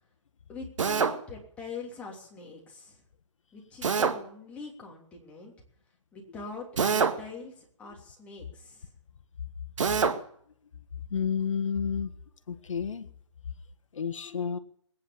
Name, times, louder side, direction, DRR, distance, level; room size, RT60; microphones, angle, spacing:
voice 1, 0.5-3.0 3.5-5.5 6.1-8.9, left 4 dB, 10° left, -2 dB, 3.1 m, -43 dB
Drill, 0.8-1.2 3.8-4.2 6.8-7.2 9.8-10.2, right 5 dB, 75° right, 2.0 m, -25 dB
voice 2, 11.1-12.1 12.5-13.1 13.9-14.6, left 6 dB, 80° left, 9 dB, 1.5 m, -30 dB
20.5 x 9.7 x 7.2 m, 0.62 s
hypercardioid pair, 165°, 16 cm